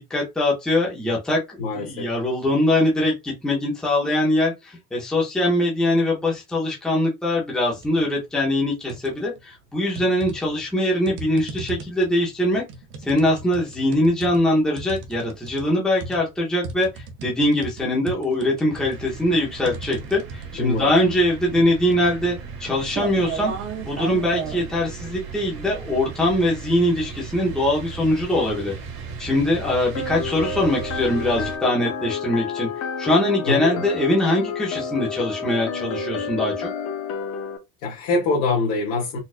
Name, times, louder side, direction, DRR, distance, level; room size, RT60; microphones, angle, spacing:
voice 1, 0.0-12.6 13.0-16.9 17.2-23.5 23.9-28.7 29.2-32.7 33.0-36.7, left 1 dB, ahead, 0.7 m, -22 dB
voice 2, 1.6-2.1 20.6-21.0 33.4-33.8 37.8-39.2, left 3 dB, 65° left, 1.3 m, -24 dB
sound 1, 7.7-8.1 8.5-9.4 9.9-24.6, right 5 dB, 40° right, 0.7 m, -36 dB
sound 2, 18.7-31.6, right 6 dB, 70° right, 1.3 m, -37 dB
sound 3, 29.9-37.6, left 5 dB, 50° left, 0.6 m, -30 dB
4.1 x 2.4 x 2.4 m
cardioid pair, 180°, 30 cm